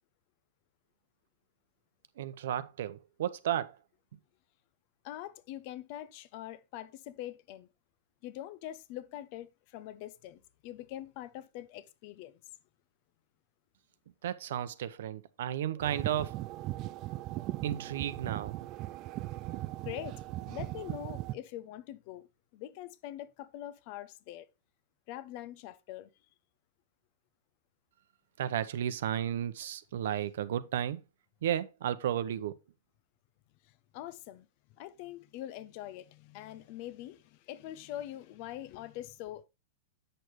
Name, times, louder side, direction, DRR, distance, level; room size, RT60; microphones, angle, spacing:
voice 1, 2.2-3.7 14.2-16.4 17.6-18.6 28.4-31.0 31.4-32.5, right 10 dB, 65° right, 0.8 m, -33 dB
voice 2, 5.0-7.7 8.2-12.4 19.8-22.3 22.5-24.5 25.1-26.1 33.6-34.5 34.7-39.4, left 13 dB, 40° left, 0.5 m, -44 dB
sound 1, 15.8-21.3, right 16 dB, 30° right, 0.3 m, -38 dB
7.7 x 6.7 x 3.1 m
supercardioid pair, 160°, 0 cm